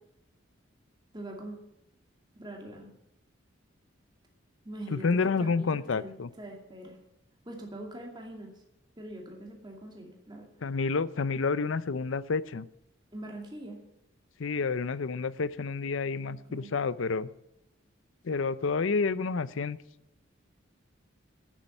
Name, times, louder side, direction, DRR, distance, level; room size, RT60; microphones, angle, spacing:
voice 1, 1.1-1.6 2.3-2.9 4.6-6.1 6.4-7.0 7.5-8.5 9.0-10.5 13.1-13.8 16.3-16.7, right 1 dB, 20° right, 0 dB, 2.4 m, -43 dB
voice 2, 4.9-6.3 10.6-12.7 14.4-17.3 18.2-19.8, left 4 dB, 75° left, 17 dB, 0.6 m, -29 dB
9.8 x 7.4 x 9.0 m, 0.86 s
head